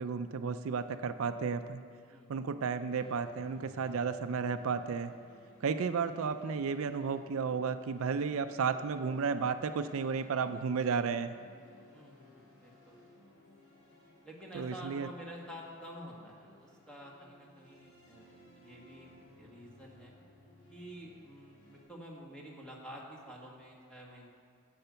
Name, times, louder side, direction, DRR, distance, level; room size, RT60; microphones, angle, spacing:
voice 1, 0.0-1.8 2.3-5.1 5.6-11.3 14.5-15.1, right 5 dB, 70° right, 10 dB, 0.4 m, -33 dB
sound 1, 2.9-21.8, left 1 dB, 75° left, 3.4 m, -60 dB
voice 2, 11.9-13.1 14.2-19.1 19.4-20.1 20.7-24.3, equal, 5° left, -3 dB, 1.6 m, -49 dB
10.0 x 7.8 x 6.8 m, 2.2 s
head